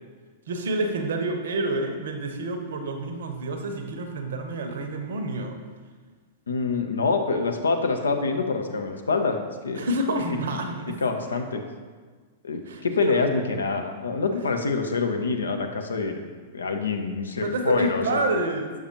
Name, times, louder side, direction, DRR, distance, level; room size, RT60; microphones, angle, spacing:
voice 1, 0.5-5.6 9.8-11.0 12.7-13.2 14.3-14.4 17.4-18.7, right 2 dB, 60° right, 5 dB, 0.7 m, -28 dB
voice 2, 6.5-9.4 9.6-9.9 11.0-11.6 12.4-18.2, left 4 dB, 70° left, 5 dB, 0.6 m, -26 dB
6.5 x 5.9 x 2.9 m, 1.5 s
figure-of-eight pair, 100°, 0 cm